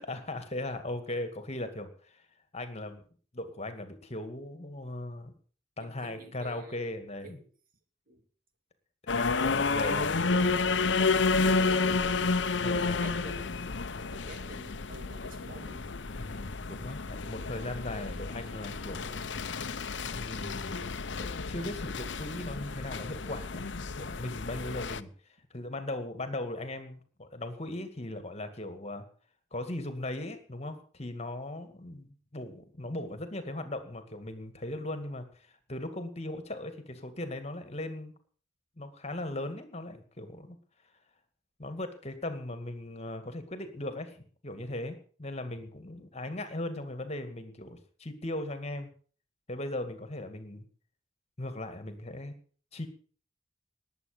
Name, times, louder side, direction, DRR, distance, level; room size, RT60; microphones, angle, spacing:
voice 1, 0.0-2.2 2.5-3.0 3.3-5.3 5.8-7.4 9.0-10.2 12.6-13.2 16.2-19.2 20.1-23.7 24.0-25.1 25.5-29.0 29.5-38.1 38.8-40.6 41.6-48.9 49.5-50.6 51.4-52.3 52.7-52.9, left 1 dB, 35° left, 2.3 m, -38 dB
voice 2, 5.8-6.9 7.2-7.5 8.1-8.2 9.7-10.4 11.5-12.3 12.8-13.7 14.1-15.9, right 1 dB, 50° right, 2.7 m, -49 dB
sound 1, 9.1-25.0, left 4 dB, 70° left, 0.9 m, -31 dB
20.0 x 8.2 x 6.9 m
head